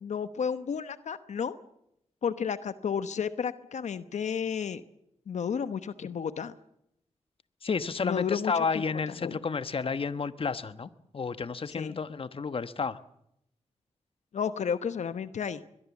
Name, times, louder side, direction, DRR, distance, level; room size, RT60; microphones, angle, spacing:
voice 1, 0.0-1.5 2.2-4.8 5.3-6.6 8.0-8.8 9.2-9.4 11.7-12.0 14.3-15.6, left 7 dB, 80° left, 12 dB, 1.0 m, -32 dB
voice 2, 7.6-13.0, left 5 dB, 50° left, 13 dB, 1.2 m, -31 dB
22.0 x 22.0 x 7.3 m, 0.78 s
cardioid pair, 70°, 12 cm